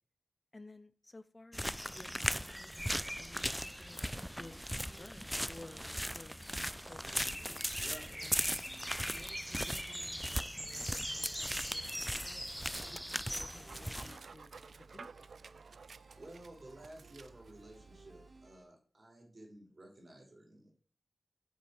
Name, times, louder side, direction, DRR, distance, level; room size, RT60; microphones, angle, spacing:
voice 1, 0.5-7.6 8.2-8.5 9.0-12.4 12.9-14.6 14.9-15.4, left 2 dB, 35° left, 0.7 m, -56 dB
sound 1, 1.5-14.2, equal, ahead, 0.5 m, -38 dB
sound 2, 3.6-18.6, right 2 dB, 65° right, 3.8 m, -64 dB
voice 2, 7.8-8.2 16.2-20.7, right 1 dB, 45° right, 5.4 m, -53 dB
Dog, 8.7-18.6, right 5 dB, 90° right, 0.5 m, -56 dB
8.6 x 7.3 x 7.5 m
wide cardioid pair, 85°, 0 cm